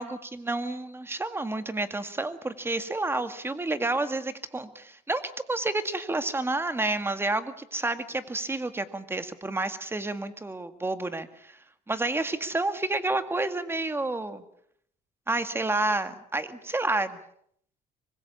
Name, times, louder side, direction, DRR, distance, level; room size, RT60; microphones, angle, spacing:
voice 1, 0.0-11.6 11.9-14.4 15.3-17.2, right 2 dB, 15° right, 10 dB, 2.0 m, -30 dB
24.5 x 22.0 x 7.1 m, 0.68 s
cardioid pair, 110°, 17 cm